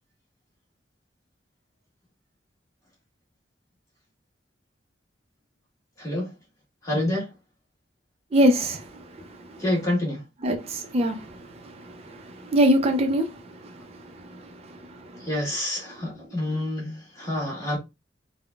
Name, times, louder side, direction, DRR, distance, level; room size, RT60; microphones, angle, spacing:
voice 1, 6.0-6.3 6.8-7.3 9.6-10.2 15.2-17.8, left 1 dB, 20° left, 1.5 m, -28 dB
voice 2, 8.3-8.8 10.4-11.2 11.9-13.3, equal, 35° right, 0.5 m, -22 dB
3.7 x 2.1 x 2.2 m
head